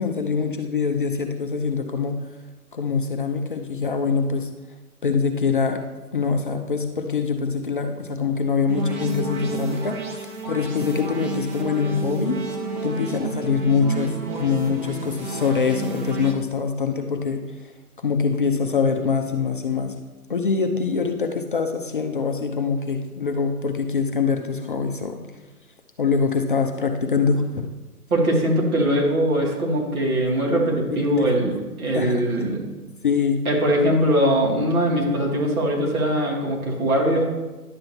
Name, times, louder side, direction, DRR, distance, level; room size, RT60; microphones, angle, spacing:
voice 1, 0.0-2.2 2.7-4.5 5.0-5.8 6.1-12.4 12.8-17.5 18.0-19.9 20.3-25.2 26.0-27.7 31.1-31.3 31.9-32.3 33.0-33.4, left 5 dB, 35° left, 5 dB, 0.5 m, -24 dB
sound 1, 8.7-16.3, right 4 dB, 30° right, 1.0 m, -31 dB
voice 2, 28.1-32.6 33.4-37.2, right 1 dB, 65° right, -2 dB, 2.9 m, -21 dB
11.0 x 7.4 x 2.9 m, 1.2 s
figure-of-eight pair, 135°, 46 cm